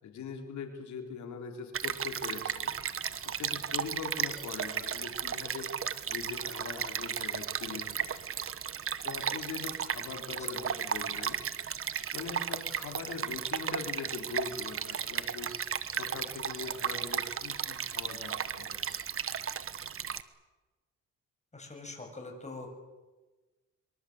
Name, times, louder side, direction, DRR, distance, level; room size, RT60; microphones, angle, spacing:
voice 1, 0.0-2.7 3.2-5.7 6.1-8.4 9.0-11.4 12.1-15.5 15.9-19.0, left 5 dB, 70° left, 4 dB, 4.2 m, -42 dB
Stream, 1.7-20.2, right 8 dB, 45° right, 1.4 m, -35 dB
voice 2, 10.3-10.6 21.5-22.7, left 3 dB, 25° left, 3 dB, 7.7 m, -44 dB
24.5 x 24.0 x 8.2 m, 1.2 s
cardioid pair, 90°, 30 cm